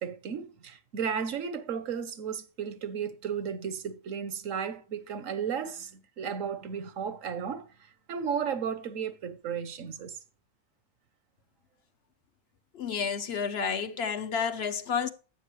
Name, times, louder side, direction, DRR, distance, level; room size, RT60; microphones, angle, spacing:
voice 1, 0.0-7.7 8.1-10.2, right 7 dB, 85° right, 1.4 m, -34 dB
voice 2, 12.7-15.1, left 6 dB, 55° left, 1.1 m, -30 dB
12.0 x 8.5 x 3.2 m
omnidirectional pair, 1.3 m